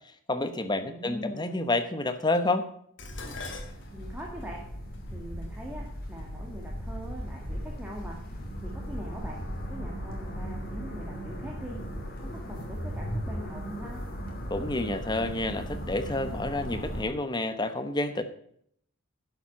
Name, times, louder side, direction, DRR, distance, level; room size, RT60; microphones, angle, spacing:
voice 1, 0.3-2.7 14.5-18.2, left 2 dB, 20° left, 9 dB, 1.0 m, -29 dB
voice 2, 0.8-1.6 3.9-4.6 5.1-8.2 8.6-9.4 9.7-11.8 12.2-14.0, equal, 10° right, -2 dB, 1.9 m, -42 dB
Dishes pots and pans, 3.0-7.3 8.2-8.6 9.0-9.9 10.1-10.2, left 3 dB, 60° left, 2.3 m, -46 dB
sound 1, 3.0-17.0, equal, 45° left, 2.8 m, -37 dB
11.0 x 7.3 x 5.8 m, 0.66 s
head